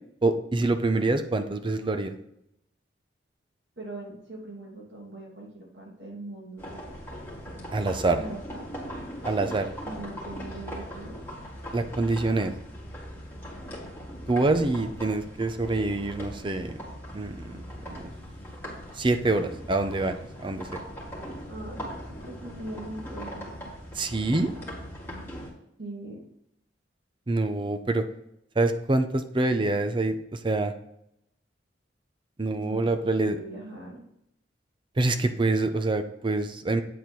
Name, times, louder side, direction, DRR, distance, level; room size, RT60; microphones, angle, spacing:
voice 1, 0.2-2.2 7.7-8.2 9.2-9.7 11.7-12.5 14.3-16.8 17.1-18.1 18.9-20.2 20.4-20.8 23.9-24.5 27.3-28.0 28.6-30.7 32.4-33.4 35.0-36.8, right 2 dB, 25° right, 8 dB, 0.5 m, -26 dB
voice 2, 3.8-6.7 8.2-8.7 9.8-11.2 21.5-23.5 25.8-26.3 32.6-32.8 33.2-34.1, right 2 dB, 70° right, -3 dB, 2.9 m, -41 dB
sound 1, 6.6-25.5, equal, 15° left, 2.1 m, -40 dB
8.4 x 3.9 x 4.5 m, 0.78 s
head